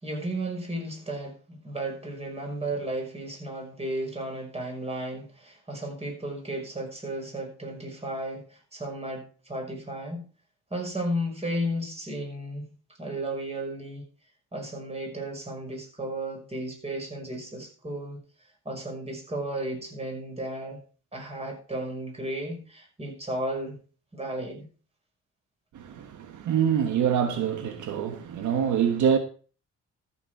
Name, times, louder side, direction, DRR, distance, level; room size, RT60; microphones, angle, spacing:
voice 1, 0.0-10.3 10.7-12.7 13.0-14.0 14.5-18.2 18.7-20.8 21.1-23.8 24.1-24.7, right 1 dB, 20° right, 5.3 m, -34 dB
voice 2, 25.7-29.2, right 8 dB, 75° right, 1.4 m, -25 dB
13.5 x 7.1 x 4.7 m
cardioid pair, 90°, 30 cm